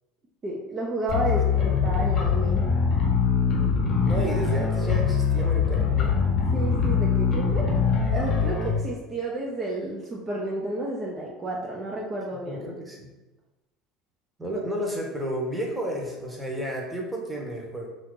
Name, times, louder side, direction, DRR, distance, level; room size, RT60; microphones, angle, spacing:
voice 1, 0.4-1.5 1.8-2.6 6.5-7.7 8.1-12.6, right 1 dB, 30° right, -3 dB, 0.6 m, -31 dB
sound 1, 1.1-8.7, left 6 dB, 45° left, 0.8 m, -23 dB
voice 2, 1.3-1.7 4.0-6.2 12.4-13.1 14.4-17.9, equal, 10° right, -1 dB, 0.9 m, -32 dB
2.6 x 2.5 x 3.7 m, 1.1 s
hypercardioid pair, 80°, 0 cm